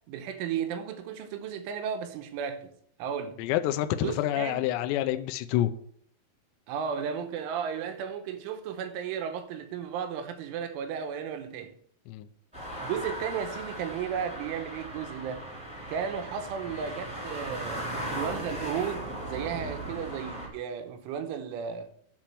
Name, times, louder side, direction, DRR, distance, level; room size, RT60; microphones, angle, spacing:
voice 1, 0.1-2.7 3.0-3.4 3.9-4.7 6.7-11.7 12.8-15.5 15.9-21.9, right 7 dB, 80° right, 3.3 m, -34 dB
voice 2, 3.4-5.7 12.1-12.3, left 13 dB, 85° left, 2.4 m, -27 dB
sound 1, 12.5-20.5, right 1 dB, ahead, 2.0 m, -37 dB
11.0 x 4.4 x 7.6 m
omnidirectional pair, 5.8 m